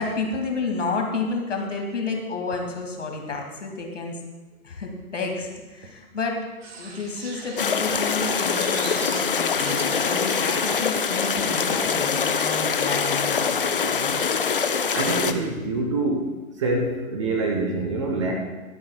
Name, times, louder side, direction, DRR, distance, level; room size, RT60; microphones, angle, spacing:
voice 1, 0.0-4.2 4.6-6.4 6.8-14.2, left 3 dB, 55° left, 2 dB, 2.2 m, -30 dB
sound 1, 6.6-11.7, right 3 dB, 45° right, 1.9 m, -40 dB
sound 2, 7.6-15.3, left 6 dB, 40° left, 0.5 m, -24 dB
voice 2, 14.9-16.3 16.6-18.4, right 2 dB, 20° right, 2 dB, 0.8 m, -25 dB
24.0 x 8.6 x 2.2 m, 1.2 s
figure-of-eight pair, 130°, 44 cm